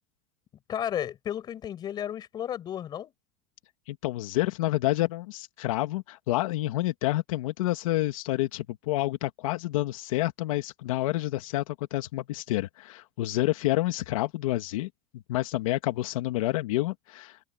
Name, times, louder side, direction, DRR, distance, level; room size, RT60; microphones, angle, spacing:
voice 1, 0.7-3.1, left 10 dB, 25° left, 5.5 m, -33 dB
voice 2, 3.9-14.9 15.3-17.4, left 17 dB, 80° left, 1.9 m, -28 dB
open air
supercardioid pair, 175°, 17 cm